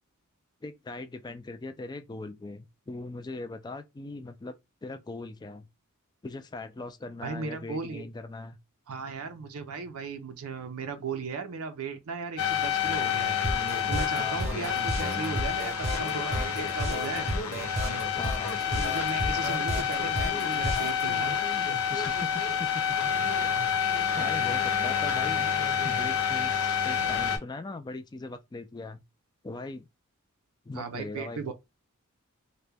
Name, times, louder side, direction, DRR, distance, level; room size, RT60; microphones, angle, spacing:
voice 1, 0.6-4.6 4.8-5.7 6.2-8.6 14.2-14.7 18.1-18.7 21.9-22.8 23.1-23.5 24.1-25.5 25.8-29.0 29.4-29.9 30.7-31.5, left 3 dB, 20° left, 0.3 m, -40 dB
voice 2, 7.2-8.1 8.9-13.4 13.9-17.3 18.8-21.4 30.7-31.5, right 5 dB, 75° right, 0.5 m, -36 dB
sound 1, 12.4-27.4, left 7 dB, 75° left, 0.7 m, -28 dB
sound 2, 13.4-21.0, equal, 30° right, 0.7 m, -32 dB
2.9 x 2.1 x 3.3 m
head